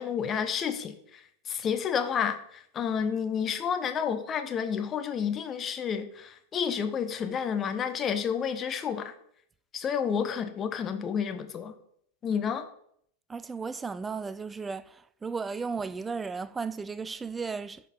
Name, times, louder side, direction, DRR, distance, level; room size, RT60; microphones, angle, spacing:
voice 1, 0.0-9.1 9.7-11.7 12.2-12.7, left 7 dB, 25° left, 0.7 m, -30 dB
voice 2, 13.3-14.8 15.2-17.8, right 5 dB, 15° right, 0.3 m, -34 dB
6.7 x 4.5 x 4.4 m
figure-of-eight pair, 90°, 0 cm